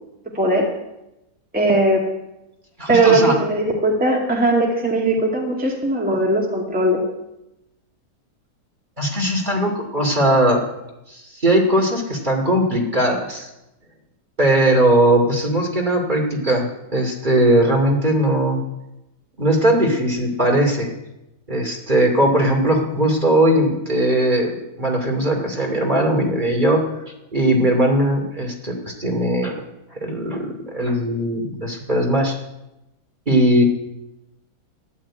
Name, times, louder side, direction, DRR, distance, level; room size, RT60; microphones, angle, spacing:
voice 1, 0.3-0.7 1.5-2.0 2.9-7.0, right 2 dB, 5° right, -1 dB, 2.3 m, -19 dB
voice 2, 2.8-3.3 9.0-10.6 11.1-13.5 14.4-16.7 16.9-18.6 19.4-20.9 21.5-26.8 27.3-29.6 29.9-32.4 33.3-33.6, right 1 dB, 30° right, 1 dB, 2.7 m, -19 dB
14.0 x 11.0 x 8.7 m, 0.93 s
omnidirectional pair, 1.7 m